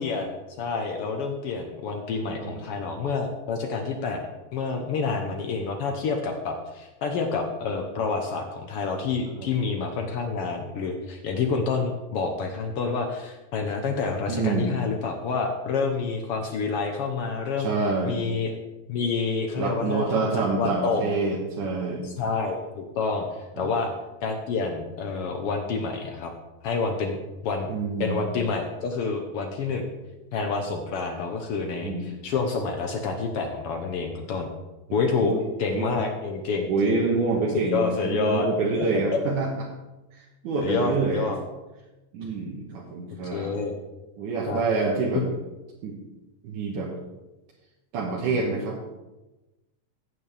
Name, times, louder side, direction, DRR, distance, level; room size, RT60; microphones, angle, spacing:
voice 1, 0.0-17.7 18.0-18.5 18.9-21.0 22.0-23.3 23.6-23.9 24.2-26.3 26.6-27.2 27.4-27.7 28.0-29.9 30.3-34.5 34.9-35.3 35.6-37.0 37.7-38.5 38.8-38.9 39.1-39.2 40.6-41.4 43.3-43.7 44.4-44.6 45.1-45.2, left 4 dB, 70° left, 4 dB, 1.4 m, -28 dB
voice 2, 2.3-2.6 9.3-9.5 14.3-14.8 17.6-18.2 19.6-22.1 23.6-23.7 27.7-28.2 31.8-32.1 35.2-35.4 35.7-36.0 36.7-39.5 40.4-41.3 42.1-43.6 44.2-45.2 45.8-46.0 46.4-46.9 47.9-48.8, right 4 dB, 75° right, -3 dB, 2.8 m, -27 dB
15.0 x 8.5 x 3.4 m, 1.1 s
omnidirectional pair, 3.7 m